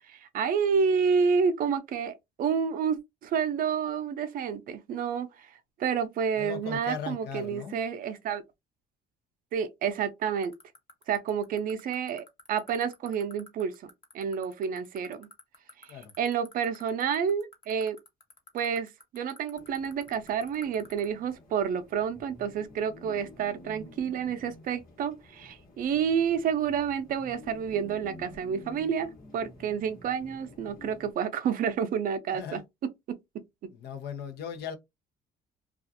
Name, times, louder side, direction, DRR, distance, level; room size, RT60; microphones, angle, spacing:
voice 1, 0.0-5.5 5.8-8.4 9.5-10.5 11.1-13.7 14.1-15.3 15.8-15.9 16.2-18.0 18.5-32.6 33.1-33.4, right 7 dB, 55° right, 0.5 m, -29 dB
voice 2, 6.4-7.8 15.9-16.1 32.3-32.6 33.7-34.8, left 7 dB, 75° left, 0.7 m, -38 dB
sound 1, 10.4-21.1, left 3 dB, 35° left, 0.8 m, -49 dB
sound 2, 19.5-31.1, left 1 dB, 55° left, 1.1 m, -50 dB
2.4 x 2.4 x 2.6 m
cardioid pair, 110°, 17 cm